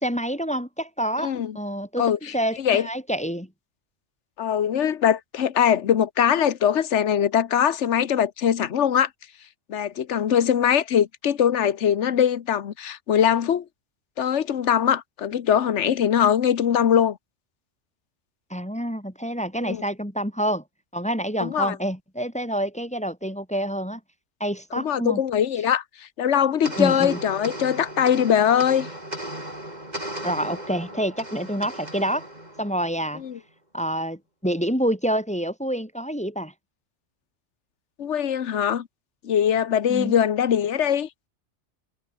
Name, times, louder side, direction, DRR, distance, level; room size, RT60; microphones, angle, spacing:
voice 1, 0.0-3.5 18.5-20.6 20.9-24.0 24.4-25.2 26.8-27.2 30.2-32.3 32.6-33.2 33.7-36.5 39.9-40.1, equal, 5° left, 4.7 m, -27 dB
voice 2, 1.2-1.6 2.0-2.9 4.4-9.1 9.7-13.6 14.2-17.2 19.6-19.8 21.4-21.7 24.7-28.9 33.1-33.4 38.0-38.9 39.2-41.1, left 9 dB, 80° left, 1.3 m, -22 dB
sound 1, 26.6-33.3, right 1 dB, 35° right, 7.2 m, -36 dB
omnidirectional pair, 1.2 m